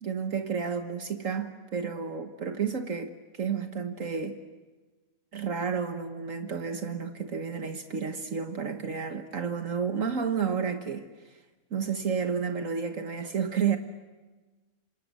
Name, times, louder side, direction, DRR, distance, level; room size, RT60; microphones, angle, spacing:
voice 1, 0.0-4.4 5.3-11.1 11.7-13.8, right 6 dB, 65° right, 7 dB, 1.6 m, -31 dB
28.5 x 25.5 x 7.6 m, 1.3 s
omnidirectional pair, 1.5 m